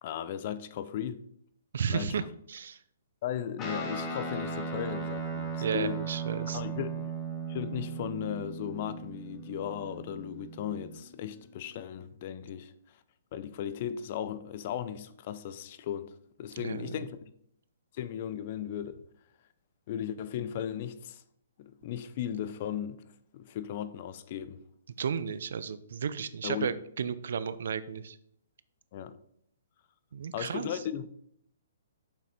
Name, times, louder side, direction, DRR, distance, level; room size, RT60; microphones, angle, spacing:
voice 1, 0.0-1.2 1.9-2.2 3.2-6.0 6.5-7.1 7.5-12.7 13.3-17.2 17.9-19.0 19.9-21.2 21.6-23.0 23.3-24.6 26.4-26.7 28.9-29.2 30.3-31.1, left 9 dB, 45° left, 0.6 m, -36 dB
voice 2, 1.7-2.2 2.5-2.8 5.6-6.6 16.6-16.9 25.0-28.2 30.1-30.7, right 7 dB, 65° right, 0.5 m, -33 dB
Guitar, 3.6-11.2, right 4 dB, 25° left, 1.6 m, -37 dB
6.7 x 5.9 x 4.4 m
hypercardioid pair, 130°, 0 cm